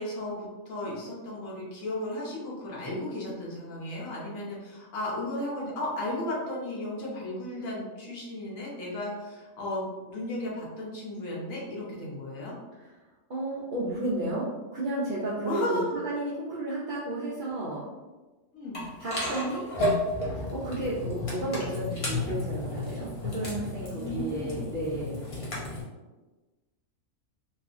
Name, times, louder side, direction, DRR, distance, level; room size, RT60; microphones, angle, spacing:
voice 1, 0.0-12.6 15.4-16.0 18.5-18.9 23.9-24.6, left 1 dB, 70° left, -4 dB, 1.2 m, -34 dB
voice 2, 13.3-17.9 19.0-19.7 20.3-25.2, right 2 dB, 85° right, -7 dB, 0.4 m, -32 dB
sound 1, 18.7-25.8, left 2 dB, 40° left, 0.5 m, -32 dB
2.7 x 2.4 x 2.4 m, 1.2 s
omnidirectional pair, 1.4 m